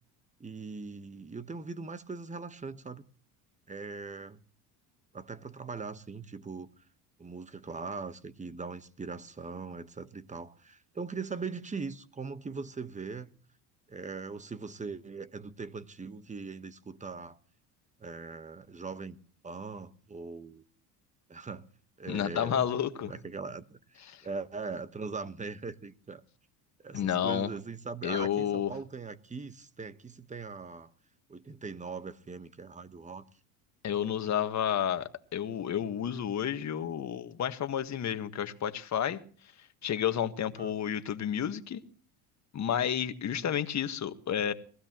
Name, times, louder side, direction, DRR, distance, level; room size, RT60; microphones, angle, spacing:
voice 1, 0.4-3.0 3.7-4.4 5.1-6.7 7.2-13.3 13.9-17.4 18.0-19.2 19.4-20.6 21.3-21.7 22.0-22.7 23.0-26.2 26.8-30.9 31.3-33.2 40.5-40.8 43.4-43.6, right 4 dB, 15° right, 1.2 m, -40 dB
voice 2, 22.1-23.1 24.1-24.2 26.9-27.5 28.0-28.7 33.8-39.2 39.8-41.8 42.5-44.5, left 9 dB, 40° left, 1.6 m, -31 dB
21.5 x 16.0 x 3.0 m
supercardioid pair, 95°, 43 cm